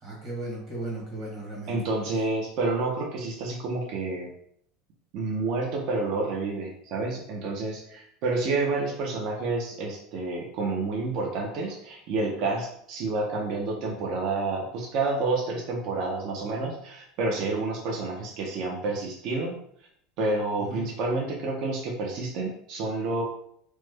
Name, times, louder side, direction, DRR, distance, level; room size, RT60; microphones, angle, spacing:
voice 1, 0.0-1.7 20.6-20.9, right 2 dB, 30° right, -4 dB, 1.1 m, -36 dB
voice 2, 1.7-4.3 5.1-19.5 20.2-23.2, right 3 dB, 45° right, -1 dB, 0.6 m, -29 dB
3.1 x 2.1 x 3.3 m, 0.67 s
cardioid pair, 165°, 0 cm